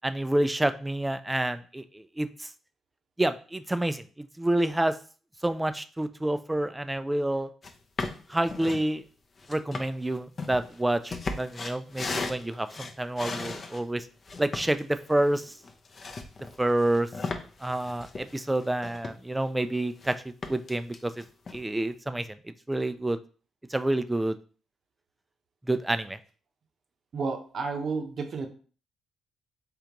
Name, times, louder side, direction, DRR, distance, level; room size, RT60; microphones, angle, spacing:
voice 1, 0.0-2.5 3.2-5.0 5.4-7.5 8.3-9.0 9.5-14.1 14.4-15.5 16.6-17.1 17.6-20.1 20.5-21.1 21.5-22.4 22.7-23.2 23.7-24.4 25.7-26.2, right 1 dB, 10° right, 11 dB, 0.3 m, -28 dB
sound 1, 7.6-7.7 8.0-8.9 9.4-13.8 14.3-19.5 19.8-20.1 20.4-21.6, left 3 dB, 40° left, 0.5 m, -37 dB
voice 2, 27.1-28.5, right 4 dB, 55° right, 5 dB, 0.7 m, -31 dB
3.7 x 3.4 x 2.9 m, 0.39 s
cardioid pair, 90°, 0 cm